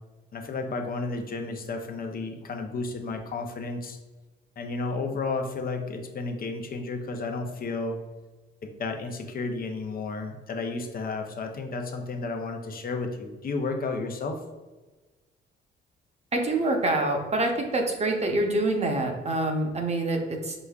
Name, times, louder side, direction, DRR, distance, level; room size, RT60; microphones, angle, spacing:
voice 1, 0.3-4.0 4.6-8.0 8.6-14.4, left 3 dB, 45° left, 4 dB, 0.6 m, -32 dB
voice 2, 16.3-20.5, right 2 dB, 35° right, 2 dB, 0.8 m, -26 dB
5.0 x 3.3 x 2.4 m, 1.2 s
cardioid pair, 90°, 20 cm